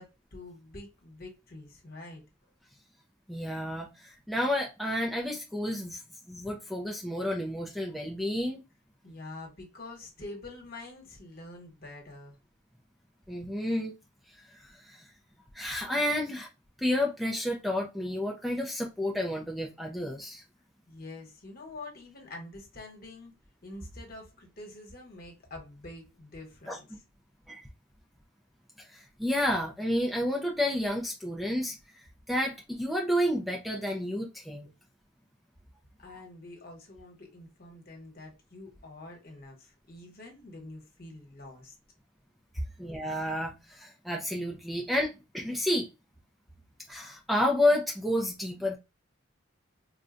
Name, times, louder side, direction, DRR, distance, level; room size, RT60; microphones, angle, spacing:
voice 1, 0.0-2.2 9.0-12.4 20.9-23.3 23.6-26.9 36.0-41.7, left 2 dB, 50° left, 1.1 m, -46 dB
voice 2, 3.3-6.0 6.3-8.6 13.3-13.9 14.5-15.0 15.5-16.5 16.8-20.4 26.7-26.8 27.5-27.6 28.8-31.8 32.3-34.7 42.8-45.9 46.9-48.8, left 1 dB, ahead, 0.4 m, -30 dB
3.7 x 2.2 x 2.4 m
head